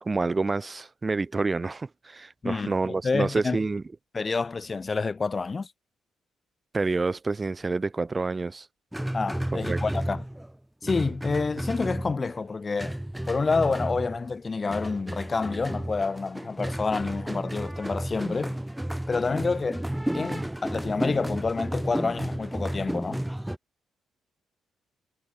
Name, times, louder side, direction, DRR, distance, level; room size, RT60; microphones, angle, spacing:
voice 1, 0.0-3.8 6.7-8.7 9.5-9.8, right 3 dB, 25° right, 1.2 m, -28 dB
voice 2, 2.4-3.6 4.1-5.7 9.1-10.2 10.8-13.0 13.3-18.6 19.1-19.9 20.1-23.2, left 4 dB, 30° left, 1.1 m, -28 dB
sound 1, 8.9-10.6 10.8-12.4 12.8-14.4 14.7-23.6, right 1 dB, 5° right, 2.1 m, -32 dB
cardioid pair, 90°, 0 cm